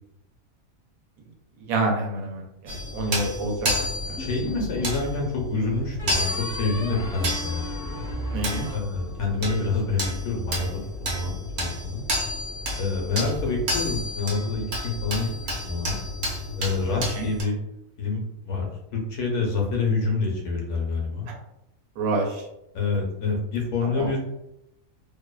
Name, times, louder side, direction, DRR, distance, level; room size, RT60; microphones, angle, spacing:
voice 1, 1.7-4.3 8.3-8.7 17.2-17.3 21.3-21.4 22.0-22.4 24.0-24.1, right 2 dB, 85° right, 1 dB, 1.0 m, -28 dB
sound 1, 2.7-17.4, equal, 55° right, 0.9 m, -31 dB
voice 2, 4.2-8.1 8.7-10.7 11.0-12.0 12.8-16.0 16.6-17.6 18.0-21.3 22.7-24.2, left 3 dB, 65° left, 0 dB, 0.9 m, -27 dB
sound 2, 4.2-5.0 6.0-9.5, equal, 5° left, 0.5 m, -36 dB
2.6 x 2.2 x 2.2 m, 0.84 s
omnidirectional pair, 1.4 m